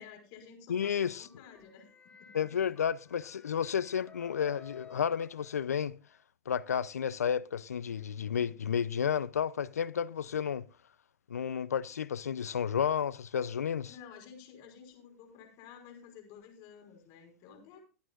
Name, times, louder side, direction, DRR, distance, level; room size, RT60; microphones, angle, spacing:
voice 1, 0.0-1.9 2.2-2.6 10.1-10.5 13.9-17.8, left 7 dB, 50° left, 5.3 m, -52 dB
voice 2, 0.7-1.3 2.3-5.9 6.5-10.6 11.3-13.9, left 8 dB, 90° left, 0.5 m, -32 dB
sound 1, 1.2-6.0, left 6 dB, 15° left, 2.3 m, -55 dB
24.0 x 8.9 x 2.4 m
hypercardioid pair, 105°, 8 cm